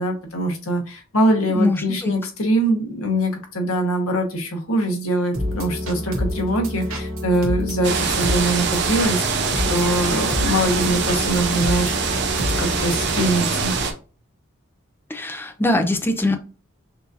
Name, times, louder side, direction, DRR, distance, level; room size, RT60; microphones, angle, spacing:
voice 1, 0.0-9.3 9.7-11.9 12.6-13.7, right 1 dB, 90° left, 2 dB, 1.1 m, -23 dB
voice 2, 1.5-2.1 15.1-16.4, left 2 dB, 10° left, 6 dB, 0.4 m, -22 dB
sound 1, 5.3-13.7, equal, 80° right, 1.2 m, -28 dB
sound 2, 7.8-13.9, right 5 dB, 50° right, 0.6 m, -24 dB
5.7 x 2.6 x 2.7 m, 0.36 s
head